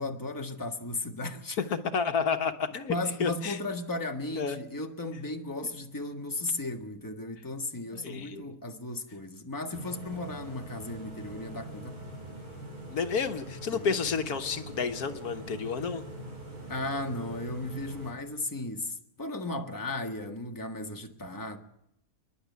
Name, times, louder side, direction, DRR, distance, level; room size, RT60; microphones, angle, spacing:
voice 1, 0.0-1.6 2.9-12.1 13.7-14.0 16.7-21.6, left 2 dB, 15° left, 1.6 m, -35 dB
voice 2, 1.7-2.9 3.2-3.6 4.3-4.6 7.9-8.5 12.9-16.0, left 5 dB, 80° left, 1.6 m, -30 dB
sound 1, 9.7-18.1, right 1 dB, 85° right, 6.2 m, -43 dB
27.5 x 11.0 x 9.5 m
omnidirectional pair, 1.6 m